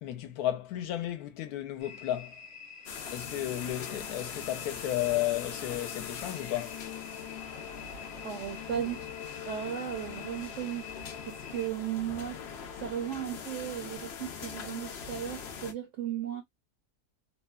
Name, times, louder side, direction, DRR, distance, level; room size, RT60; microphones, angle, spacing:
voice 1, 0.0-2.4 3.1-6.8, left 13 dB, 75° left, 1.0 m, -33 dB
sound 1, 1.8-11.7, left 6 dB, 50° left, 0.9 m, -48 dB
sound 2, 2.9-15.7, left 7 dB, 90° left, 0.5 m, -42 dB
voice 2, 8.2-9.1 9.4-12.4 12.7-16.4, right 10 dB, 70° right, 0.7 m, -36 dB
3.0 x 2.1 x 2.2 m
omnidirectional pair, 1.7 m